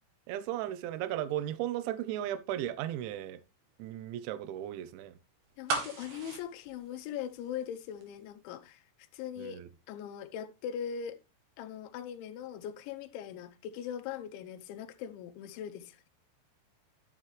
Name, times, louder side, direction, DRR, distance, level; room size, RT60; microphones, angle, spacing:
voice 1, 0.3-3.4 3.8-5.2 9.4-9.7, right 12 dB, 75° right, 3.1 m, -36 dB
voice 2, 5.6-8.9 9.1-9.6 9.9-11.2 11.6-16.1, left 9 dB, 80° left, 3.0 m, -40 dB
sound 1, 5.7-7.7 8.0-8.1, right 4 dB, 55° right, 3.2 m, -36 dB
12.0 x 7.4 x 3.2 m
omnidirectional pair, 5.8 m